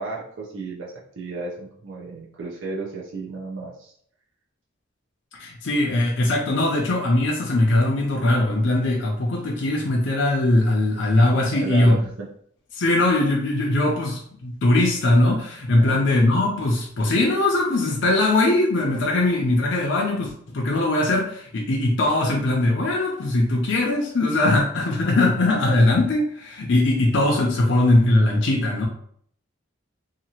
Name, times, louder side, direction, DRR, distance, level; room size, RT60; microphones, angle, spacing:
voice 1, 0.0-3.9 11.3-12.1 15.7-16.1, right 4 dB, 70° right, -4 dB, 0.6 m, -34 dB
voice 2, 5.3-11.9 12.7-28.9, left 2 dB, 60° left, -1 dB, 0.5 m, -20 dB
2.8 x 2.4 x 2.8 m, 0.63 s
head